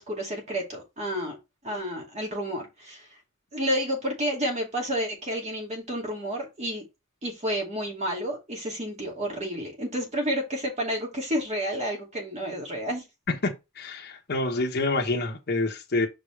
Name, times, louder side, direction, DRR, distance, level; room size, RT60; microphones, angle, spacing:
voice 1, 0.0-1.4 1.6-3.1 3.5-6.8 7.2-13.0, equal, 35° right, 2.4 m, -30 dB
voice 2, 13.4-16.1, left 2 dB, 50° left, 1.2 m, -27 dB
6.0 x 5.0 x 3.3 m
head